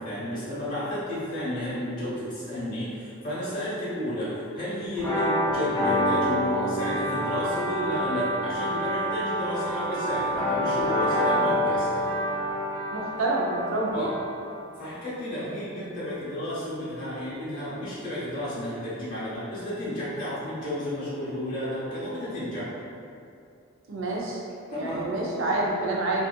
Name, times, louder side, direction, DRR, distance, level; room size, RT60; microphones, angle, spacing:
voice 1, 0.0-12.1 13.9-14.1 14.8-22.7 24.7-25.1, equal, 40° left, -10 dB, 1.0 m, -32 dB
sound 1, 5.0-14.6, equal, 5° left, 0.7 m, -27 dB
voice 2, 12.9-14.1 23.9-24.4 24.8-26.2, right 2 dB, 75° right, -3 dB, 0.5 m, -27 dB
2.6 x 2.4 x 2.3 m, 2.5 s
head